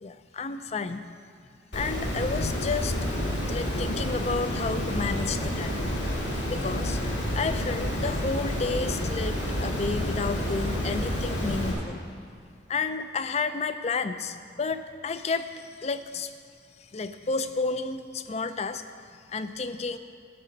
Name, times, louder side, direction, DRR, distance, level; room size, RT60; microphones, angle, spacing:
voice 1, 0.0-1.0 1.7-2.9 3.5-5.8 6.5-7.0 7.4-12.4 12.7-16.3 16.9-18.8 19.3-20.0, left 4 dB, 35° left, 11 dB, 0.4 m, -31 dB
Water, 1.7-11.7, equal, 75° left, 2.4 m, -29 dB
11.0 x 6.4 x 6.5 m, 2.3 s
head